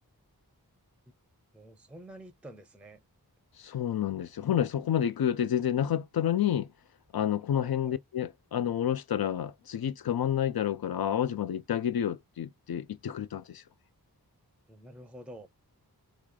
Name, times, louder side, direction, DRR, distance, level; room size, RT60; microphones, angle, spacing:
voice 1, 1.5-3.0 7.6-8.0 14.7-15.5, right 1 dB, 5° right, 0.5 m, -48 dB
voice 2, 3.6-6.7 7.1-13.6, left 10 dB, 70° left, 0.5 m, -29 dB
3.2 x 2.4 x 3.7 m
wide cardioid pair, 70°, 38 cm